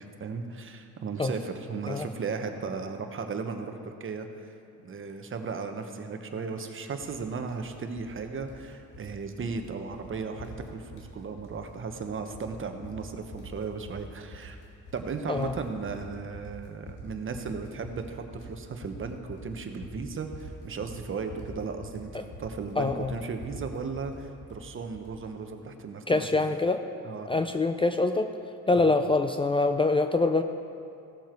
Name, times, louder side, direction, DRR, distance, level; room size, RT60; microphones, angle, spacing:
voice 1, 0.0-4.5 4.8-14.6 14.9-26.3 27.0-27.3 28.8-28.9, right 5 dB, 40° right, 6 dB, 1.1 m, -36 dB
sound 1, 7.0-7.2 7.5-8.1 8.4-9.1 9.4-9.7 9.9-10.1 10.4-11.1 11.4-12.0 12.3-25.1, equal, 85° left, 2.3 m, -45 dB
voice 2, 22.8-23.1 26.1-26.8 27.3-28.3 28.7-30.4, left 3 dB, 20° left, 8 dB, 0.4 m, -24 dB
17.0 x 7.2 x 4.5 m, 2.5 s
cardioid pair, 90°, 30 cm